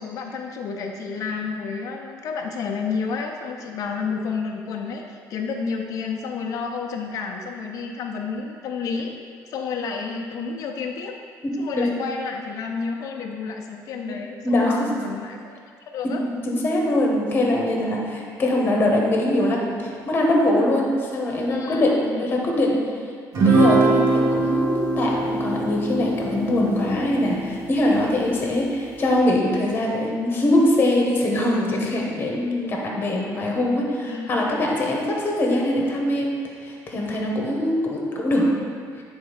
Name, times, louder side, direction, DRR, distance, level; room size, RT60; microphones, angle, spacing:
voice 1, 0.0-9.1 9.5-11.1 11.6-15.5 15.9-16.2 21.5-22.0 34.0-34.4, left 5 dB, 55° left, 2 dB, 0.5 m, -30 dB
voice 2, 11.4-11.9 14.1-14.2 14.4-14.9 16.0-22.8 23.4-36.3 36.6-38.5, left 1 dB, 30° left, -1 dB, 1.2 m, -22 dB
Guitar, 23.3-28.0, right 2 dB, 60° right, 1.9 m, -22 dB
9.3 x 3.5 x 5.1 m, 2.1 s
cardioid pair, 165°, 7 cm